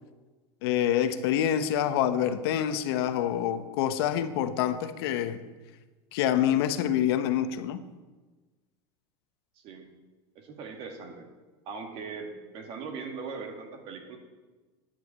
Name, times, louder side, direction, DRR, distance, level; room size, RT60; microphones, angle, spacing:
voice 1, 0.6-5.4 6.1-7.8, left 10 dB, 70° left, 10 dB, 0.9 m, -26 dB
voice 2, 9.6-9.9 10.4-11.3 11.7-14.2, right 5 dB, 45° right, 3 dB, 2.0 m, -40 dB
10.0 x 8.2 x 7.3 m, 1.3 s
supercardioid pair, 155°, 13 cm